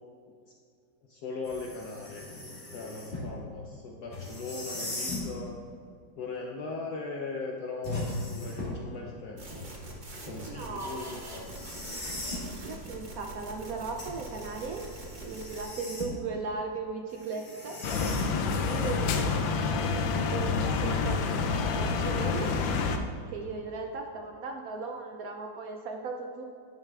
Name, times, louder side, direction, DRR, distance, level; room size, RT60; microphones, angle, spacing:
voice 1, 1.0-2.3 2.7-5.5 6.2-9.6 10.2-11.6, left 3 dB, 65° left, -1 dB, 1.1 m, -39 dB
sound 1, 1.4-3.3 4.1-5.3 7.8-8.9 11.1-12.5 14.0-16.3 17.1-18.6, left 2 dB, 30° left, 1.8 m, -38 dB
sound 2, 9.4-15.6, right 1 dB, 30° right, 1.0 m, -43 dB
voice 2, 10.5-11.1 12.0-12.2 12.6-14.9 15.2-18.3 18.7-19.6 19.9-22.5 23.3-26.4, right 4 dB, 70° right, 3 dB, 0.8 m, -37 dB
sound 3, 17.8-23.0, left 4 dB, 85° left, 1.4 m, -28 dB
9.9 x 8.8 x 2.4 m, 2.3 s
omnidirectional pair, 2.1 m